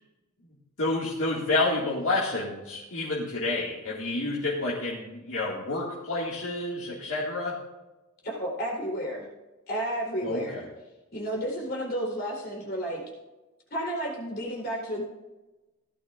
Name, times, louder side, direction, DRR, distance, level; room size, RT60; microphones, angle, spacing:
voice 1, 0.8-7.5 10.2-10.6, left 2 dB, 70° left, -6 dB, 2.1 m, -29 dB
voice 2, 8.2-9.3 9.7-10.7 11.1-13.0 13.7-15.0, right 1 dB, 45° left, -3 dB, 3.9 m, -32 dB
17.0 x 11.5 x 2.6 m, 1.1 s
head